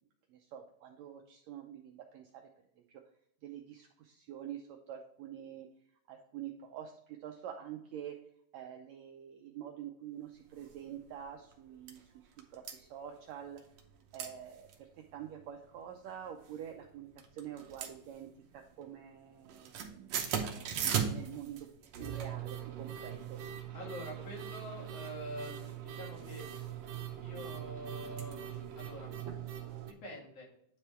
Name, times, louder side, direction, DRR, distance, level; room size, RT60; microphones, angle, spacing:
voice 1, 0.3-2.4 3.4-5.7 6.1-8.1 8.5-12.0 12.5-13.6 14.1-14.9 15.1-18.3 18.5-21.7 21.9-23.4, right 10 dB, 90° right, 3 dB, 1.5 m, -46 dB
sound 1, 10.6-10.8 11.2-11.3 11.5-12.0 12.4-12.7 13.6-13.9 14.1-14.3 14.6-14.7 15.2-15.6 16.3-16.9 17.2-18.6 18.8-19.1 19.4-29.9, right 8 dB, 70° right, 1.8 m, -39 dB
voice 2, 23.7-26.5 27.2-29.1 29.8-30.5, equal, 50° left, -5 dB, 3.1 m, -46 dB
9.6 x 3.4 x 4.3 m, 0.69 s
omnidirectional pair, 3.8 m